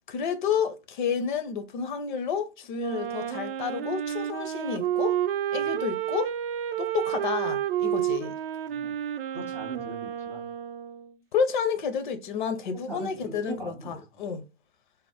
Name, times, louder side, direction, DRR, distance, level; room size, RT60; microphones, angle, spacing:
voice 1, 0.1-5.2 5.5-6.3 6.8-8.4 11.3-14.4, left 6 dB, 45° left, 0.6 m, -30 dB
Wind instrument woodwind instrument, 2.7-11.2, right 10 dB, 55° right, 0.6 m, -30 dB
voice 2, 9.3-10.4 12.7-14.4, right 3 dB, 5° right, 0.3 m, -41 dB
3.4 x 2.0 x 4.1 m
figure-of-eight pair, 110°, 33 cm